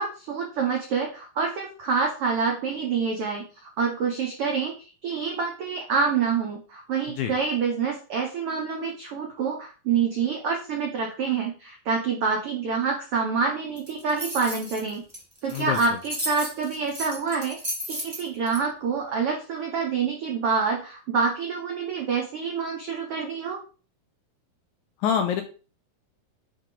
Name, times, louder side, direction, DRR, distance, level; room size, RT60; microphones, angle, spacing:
voice 1, 0.0-4.7 5.0-15.0 15.4-17.6 17.9-23.6, right 5 dB, 85° right, 1 dB, 1.2 m, -27 dB
sound 1, 13.8-18.6, right 1 dB, 25° right, 0.5 m, -34 dB
voice 2, 15.5-15.8 25.0-25.4, left 8 dB, 75° left, 6 dB, 1.8 m, -25 dB
9.1 x 3.3 x 3.8 m, 0.37 s
omnidirectional pair, 4.0 m